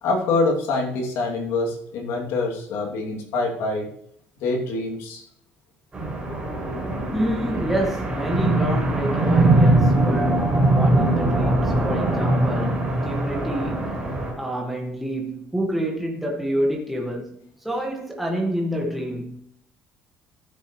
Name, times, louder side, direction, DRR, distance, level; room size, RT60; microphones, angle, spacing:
voice 1, 0.0-3.9 4.4-5.2 12.2-12.3, left 3 dB, 75° left, 2.6 m, -25 dB
sound 1, 5.9-14.3, right 2 dB, 20° right, 4.0 m, -21 dB
voice 2, 6.5-14.0 14.4-19.4, equal, 5° right, 1.7 m, -28 dB
14.5 x 6.9 x 3.1 m
cardioid pair, 140°, 5 cm